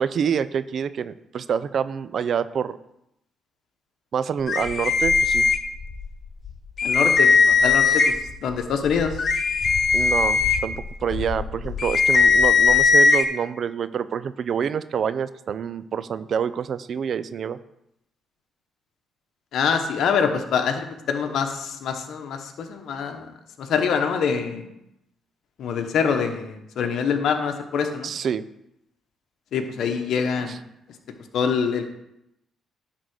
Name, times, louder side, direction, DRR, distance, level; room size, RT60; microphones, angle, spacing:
voice 1, 0.0-2.8 4.1-5.5 9.9-10.8 11.0-17.6 28.0-28.5 30.5-30.6, right 7 dB, 55° right, 15 dB, 0.4 m, -27 dB
sound 1, 4.5-6.1 6.4-6.5 6.8-8.3 8.9-13.2, left 5 dB, 45° left, 0.7 m, -19 dB
voice 2, 6.8-9.2 19.5-23.3 23.6-24.7 25.6-28.1 29.5-30.6 31.3-31.9, left 6 dB, 70° left, 5 dB, 1.0 m, -25 dB
10.5 x 3.8 x 6.5 m, 0.81 s
cardioid pair, 90°, 0 cm